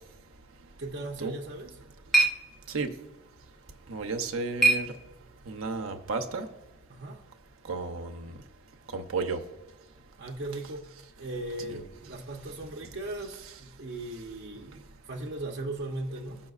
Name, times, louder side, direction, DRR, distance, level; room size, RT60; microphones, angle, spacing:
voice 1, 0.8-1.8 6.9-7.2 10.2-10.9 11.2-14.7 15.0-16.4, right 2 dB, 55° right, 0 dB, 0.7 m, -38 dB
sound 1, 1.4-5.6, right 2 dB, ahead, 0.7 m, -30 dB
voice 2, 3.9-4.9 5.5-6.5 7.7-8.3 8.9-9.4 11.7-11.8, right 4 dB, 90° right, 4 dB, 0.7 m, -32 dB
15.5 x 5.7 x 2.4 m, 1.0 s
head